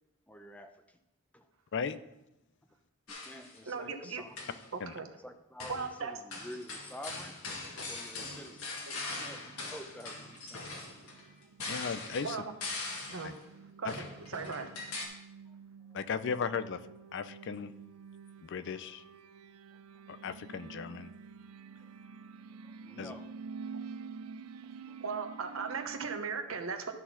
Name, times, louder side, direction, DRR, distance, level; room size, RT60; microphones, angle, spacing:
voice 1, 0.3-1.0 1.3-1.5 3.1-4.6 5.2-7.4 7.8-10.7 11.0-11.1 15.5-15.6 15.9-16.0 18.8-18.9 19.7-19.8 20.1-20.2 21.8-21.9 22.6-23.3, equal, 5° left, 6 dB, 0.6 m, -49 dB
sound 1, 3.1-3.6 4.2-4.7 5.6-5.9 6.3-13.4 13.9-15.1, left 3 dB, 85° left, 1.8 m, -41 dB
voice 2, 3.7-4.2 4.7-5.1 5.7-6.1 8.9-9.0 12.2-12.4 13.1-13.4 13.8-13.9 14.3-14.7 25.0-27.0, right 5 dB, 65° right, 5 dB, 1.0 m, -37 dB
sound 2, 8.3-26.2, right 5 dB, 90° right, 0.4 m, -50 dB
voice 3, 11.7-12.4 13.2-13.3 13.8-13.9 15.9-16.8 17.1-17.7 18.4-19.0 20.1-21.1 23.0-23.1, left 6 dB, 55° left, 13 dB, 0.4 m, -36 dB
12.5 x 4.2 x 5.7 m, 0.91 s
head